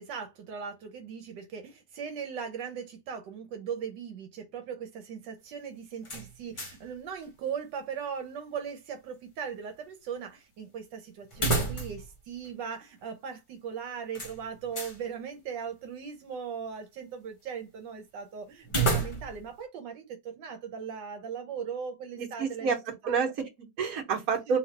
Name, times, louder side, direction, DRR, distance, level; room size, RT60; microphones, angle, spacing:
voice 1, 0.0-22.8 24.5-24.6, right 7 dB, 85° right, 1.4 m, -39 dB
sound 1, 6.0-6.9 7.2-7.3 11.3-12.1 12.4-12.5 14.1-15.0 18.6-19.5, right 3 dB, 35° left, 0.5 m, -30 dB
voice 2, 22.2-22.8 23.0-24.6, right 5 dB, 55° right, 1.5 m, -29 dB
3.1 x 2.7 x 4.3 m
omnidirectional pair, 1.9 m